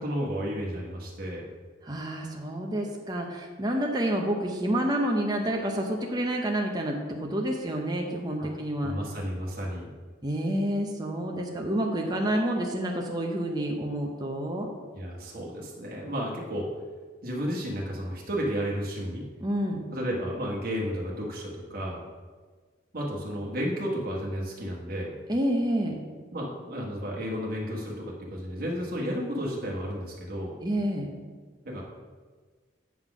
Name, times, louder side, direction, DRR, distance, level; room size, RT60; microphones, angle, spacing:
voice 1, 0.0-1.4 2.8-2.9 8.4-8.5 8.8-9.9 14.9-16.7 17.2-19.3 19.9-22.0 22.9-25.2 26.3-30.6 31.6-31.8, equal, 50° right, -3 dB, 1.2 m, -32 dB
voice 2, 1.8-8.9 10.2-14.7 19.4-19.8 25.3-25.9 30.6-31.1, right 1 dB, 20° right, 1 dB, 0.7 m, -28 dB
8.4 x 3.9 x 6.1 m, 1.5 s
head